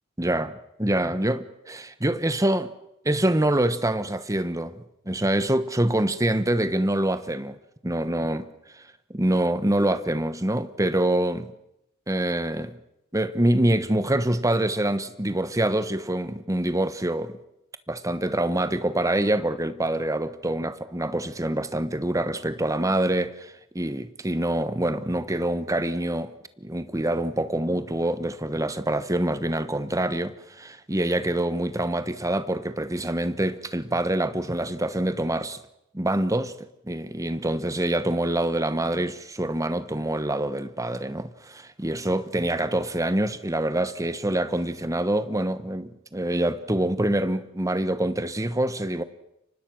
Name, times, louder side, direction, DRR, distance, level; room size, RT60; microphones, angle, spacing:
voice 1, 0.2-2.7 3.0-7.6 7.8-8.5 8.7-8.8 9.1-11.5 12.1-12.8 13.1-17.4 17.9-26.3 26.6-35.6 35.9-36.5 36.8-49.0, right 1 dB, 15° right, 1.1 m, -25 dB
29.5 x 24.5 x 6.3 m
head